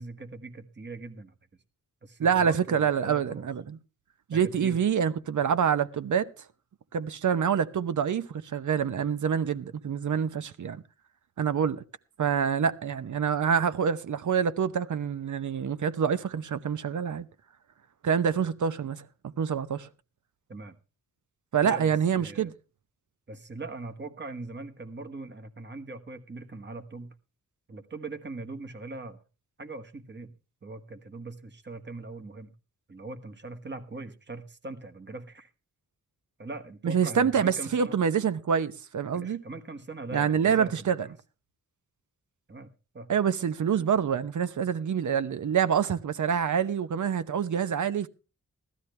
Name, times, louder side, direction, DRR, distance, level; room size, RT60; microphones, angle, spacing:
voice 1, 0.0-1.3 2.0-3.5 4.3-4.8 20.5-20.7 21.6-22.5 23.3-27.1 27.7-29.2 29.6-30.3 30.6-32.5 32.9-35.5 36.4-38.0 39.1-41.1 42.5-42.7 42.9-43.1, right 2 dB, 35° right, 1.4 m, -41 dB
voice 2, 2.2-3.8 4.3-6.3 6.9-10.8 11.4-11.8 12.2-17.3 18.0-19.0 19.4-19.9 21.5-22.5 36.8-39.4 40.1-41.1 43.1-48.1, right 7 dB, 65° right, 0.9 m, -26 dB
16.0 x 12.5 x 3.3 m
wide cardioid pair, 110°, 33 cm